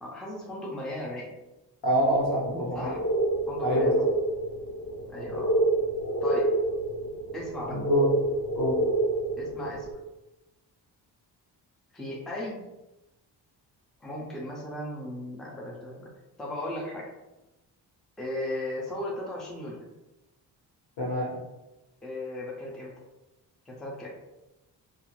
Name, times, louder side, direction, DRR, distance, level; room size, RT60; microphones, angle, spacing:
voice 1, 0.0-1.3 2.7-3.0 3.5-4.0 5.1-5.6 6.2-6.6 7.3-7.8 9.4-9.9 11.9-12.6 14.0-16.1 16.4-17.1 18.2-19.8 22.0-22.9 23.7-24.1, left 1 dB, ahead, -3 dB, 0.4 m, -36 dB
voice 2, 1.8-2.9 3.6-4.0 7.7-8.1 8.5-8.8 21.0-21.3, equal, 75° left, -4 dB, 1.2 m, -26 dB
sound 1, 2.5-9.9, right 1 dB, 45° left, 0.6 m, -28 dB
2.4 x 2.3 x 3.0 m, 1.0 s
cardioid pair, 140°, 41 cm